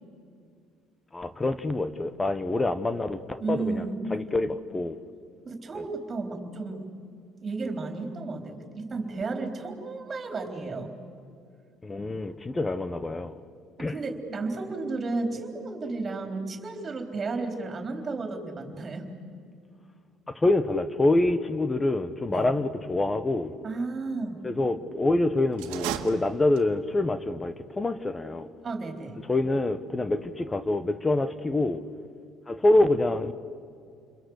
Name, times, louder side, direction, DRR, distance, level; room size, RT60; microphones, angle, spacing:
voice 1, 1.1-3.8 4.1-5.0 5.7-5.8 11.8-13.4 13.8-14.0 20.3-23.5 24.4-28.5 29.3-31.8 32.5-33.3, left 2 dB, 20° left, 1.1 m, -26 dB
voice 2, 3.4-4.1 5.4-6.8 7.4-10.9 13.8-19.1 22.3-22.5 23.6-24.4 28.6-29.2, right 3 dB, 35° right, 4.1 m, -33 dB
sound 1, 25.5-26.9, right 11 dB, 85° right, 1.7 m, -35 dB
29.0 x 22.0 x 8.2 m
supercardioid pair, 90°, 0 cm